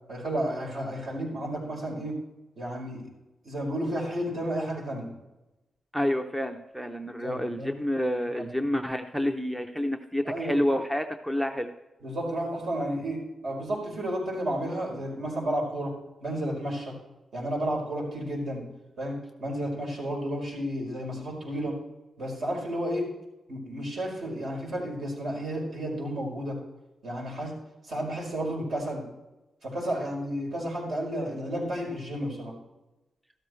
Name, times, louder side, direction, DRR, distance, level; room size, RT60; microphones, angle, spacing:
voice 1, 0.1-2.2 2.6-3.1 3.4-5.1 7.2-7.7 8.4-8.5 10.2-10.6 12.0-15.9 16.2-16.9 17.3-18.6 19.0-21.8 22.2-23.1 23.5-26.6 27.0-27.5 27.8-29.0 29.6-32.5, right 1 dB, 60° right, -2 dB, 5.0 m, -32 dB
voice 2, 5.9-11.7, left 1 dB, 5° right, 6 dB, 0.6 m, -29 dB
13.5 x 12.5 x 3.2 m, 1.0 s
wide cardioid pair, 130°, 0 cm